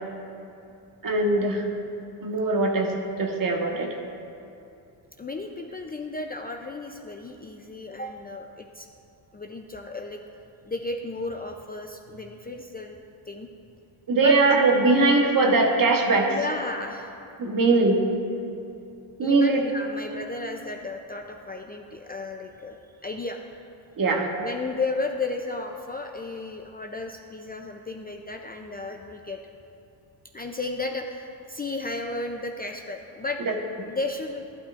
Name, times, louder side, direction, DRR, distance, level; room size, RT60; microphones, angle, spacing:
voice 1, 1.0-1.7 2.2-2.9 3.2-3.9 14.1-16.4 17.4-18.0 19.2-19.6 24.0-24.3, right 3 dB, 45° right, 2 dB, 1.3 m, -21 dB
voice 2, 5.2-8.9 9.3-10.2 10.6-13.0 13.3-13.5 14.2-14.3 16.3-17.2 19.2-22.8 23.0-23.4 24.4-29.4 30.3-33.4 33.9-34.4, left 3 dB, 20° left, 3 dB, 0.5 m, -33 dB
11.5 x 11.5 x 2.5 m, 2.6 s
cardioid pair, 85°, 47 cm